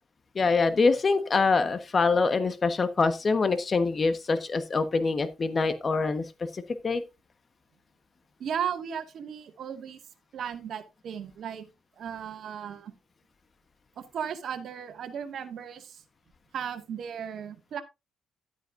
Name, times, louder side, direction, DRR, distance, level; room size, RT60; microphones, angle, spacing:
voice 1, 0.3-7.0, left 4 dB, 35° left, 1.2 m, -25 dB
voice 2, 8.4-10.0 10.3-11.7 12.0-12.9 14.0-16.0 16.5-17.8, right 8 dB, 65° right, 1.9 m, -36 dB
12.5 x 9.1 x 2.6 m
cardioid pair, 90°, 0 cm